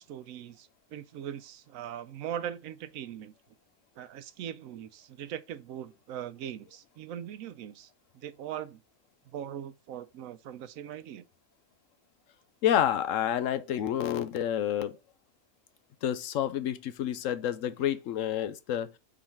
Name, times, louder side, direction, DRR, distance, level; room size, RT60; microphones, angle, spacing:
voice 1, 0.0-3.3 4.0-8.8 9.3-11.2, right 10 dB, 85° right, 1.0 m, -40 dB
voice 2, 12.6-15.0 16.0-18.9, left 10 dB, 75° left, 1.0 m, -29 dB
5.0 x 4.0 x 5.7 m
omnidirectional pair, 1.4 m